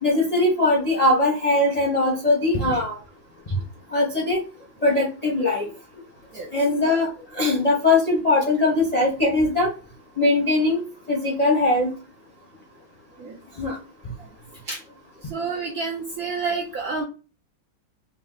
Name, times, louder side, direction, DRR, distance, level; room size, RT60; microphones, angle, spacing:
voice 1, 0.0-3.0 3.9-4.4 4.8-5.7 6.5-7.1 7.3-9.7 10.2-10.8 11.1-11.9 13.6-13.8, left 2 dB, 35° left, -2 dB, 0.6 m, -20 dB
voice 2, 15.2-17.0, right 4 dB, 65° right, 1 dB, 0.9 m, -29 dB
3.5 x 2.9 x 3.8 m, 0.34 s
omnidirectional pair, 2.2 m